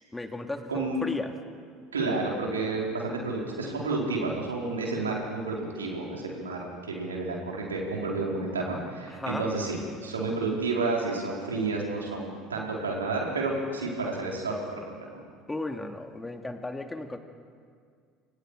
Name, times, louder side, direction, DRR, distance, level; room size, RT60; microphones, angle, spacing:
voice 1, 0.1-1.3 9.1-9.5 15.5-17.2, left 2 dB, 15° left, 5 dB, 2.5 m, -35 dB
voice 2, 0.7-1.0 1.9-15.2, right 3 dB, 90° right, -2 dB, 4.6 m, -30 dB
28.5 x 27.0 x 5.0 m, 2.1 s
hypercardioid pair, 65°, 0 cm